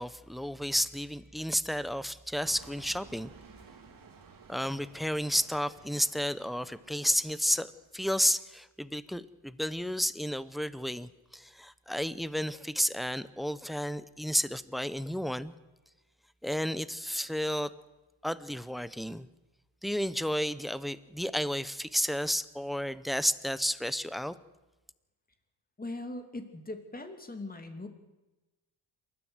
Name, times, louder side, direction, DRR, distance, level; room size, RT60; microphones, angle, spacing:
voice 1, 0.0-3.3 4.5-15.5 16.4-17.7 18.2-19.3 19.8-24.3, equal, ahead, 15 dB, 0.7 m, -32 dB
sound 1, 2.4-8.0, right 5 dB, 40° right, 2.9 m, -55 dB
voice 2, 25.8-27.9, left 2 dB, 20° left, 6 dB, 2.7 m, -40 dB
27.0 x 13.5 x 8.0 m, 1.1 s
cardioid pair, 120°, 49 cm